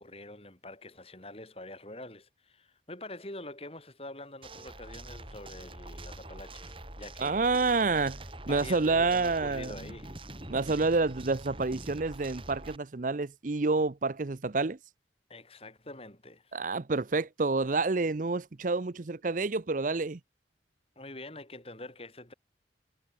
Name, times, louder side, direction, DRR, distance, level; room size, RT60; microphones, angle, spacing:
voice 1, 0.0-10.2 15.3-16.6 21.0-22.3, left 2 dB, 35° left, 7.8 m, -46 dB
sound 1, 4.4-12.8, right 1 dB, 30° right, 5.7 m, -45 dB
voice 2, 7.2-8.2 8.5-9.8 10.5-14.8 16.5-20.2, right 3 dB, 45° right, 0.7 m, -28 dB
head